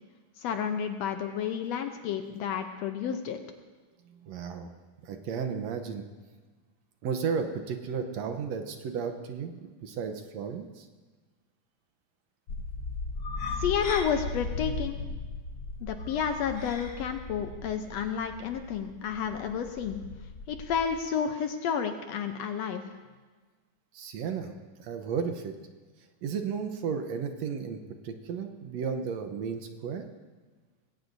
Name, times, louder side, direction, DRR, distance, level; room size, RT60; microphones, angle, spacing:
voice 1, 0.4-3.4 13.6-15.0 15.8-20.0 20.5-22.9, left 7 dB, 75° left, 6 dB, 1.7 m, -31 dB
voice 2, 4.2-4.7 5.0-6.0 7.0-10.9 23.9-24.5 24.8-25.5 26.2-30.1, right 6 dB, 70° right, 6 dB, 1.9 m, -33 dB
sound 1, 12.5-20.9, left 3 dB, 55° left, 1.2 m, -37 dB
20.5 x 17.5 x 2.6 m, 1.4 s
omnidirectional pair, 3.4 m